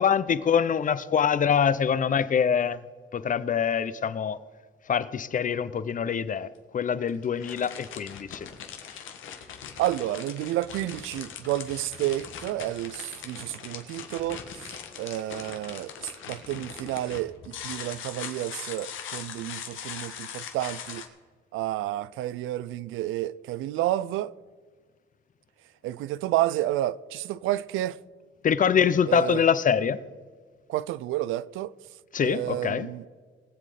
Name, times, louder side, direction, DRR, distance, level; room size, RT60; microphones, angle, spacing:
voice 1, 0.0-2.8 3.1-4.4 4.9-8.5 8.9-9.1 28.4-30.0 32.1-32.9, left 7 dB, 40° left, 0.7 m, -24 dB
sound 1, 6.2-6.3 7.1-21.1, left 8 dB, 80° left, 1.5 m, -41 dB
voice 2, 9.8-21.0 21.5-24.3 25.8-28.0 29.1-29.4 30.7-31.7 32.2-33.0, right 14 dB, 90° right, 0.5 m, -30 dB
20.5 x 7.6 x 5.0 m
cardioid pair, 90°, 20 cm